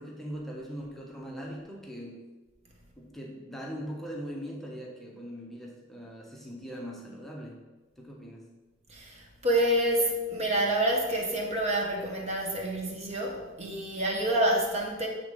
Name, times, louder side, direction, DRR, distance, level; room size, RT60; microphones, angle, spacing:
voice 1, 0.0-2.3 3.0-7.7 8.0-8.5, equal, ahead, -3 dB, 0.9 m, -41 dB
voice 2, 8.9-15.1, right 1 dB, 30° right, 0 dB, 1.0 m, -28 dB
8.0 x 3.6 x 5.0 m, 1.2 s
head